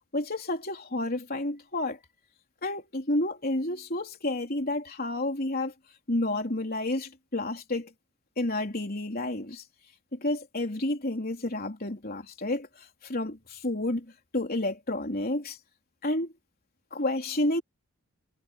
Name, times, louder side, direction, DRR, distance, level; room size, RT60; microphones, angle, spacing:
voice 1, 0.1-2.0 2.6-5.7 6.1-7.9 8.4-9.6 10.1-14.1 14.3-15.6 16.0-16.3 16.9-17.6, left 1 dB, 45° left, 3.9 m, -30 dB
head